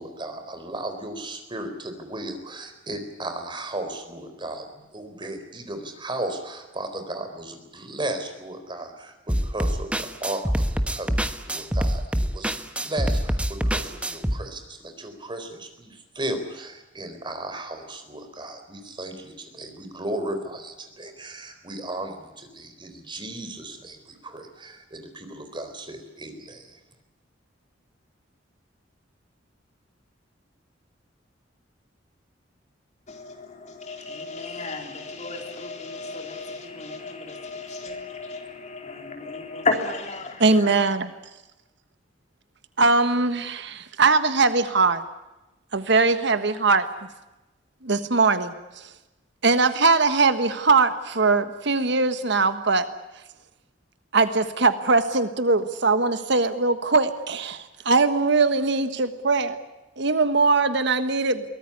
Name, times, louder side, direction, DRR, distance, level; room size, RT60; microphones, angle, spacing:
voice 1, 0.0-26.8, right 1 dB, 25° right, 4.1 m, -35 dB
sound 1, 9.3-14.3, equal, 5° right, 1.2 m, -25 dB
voice 2, 33.1-40.6, left 3 dB, 40° left, 3.7 m, -33 dB
voice 3, 40.4-41.1 42.8-45.0 45.7-46.8 47.8-48.5 49.4-52.9 54.1-59.6 60.0-61.4, right 3 dB, 65° right, 1.4 m, -21 dB
23.0 x 18.5 x 9.8 m
head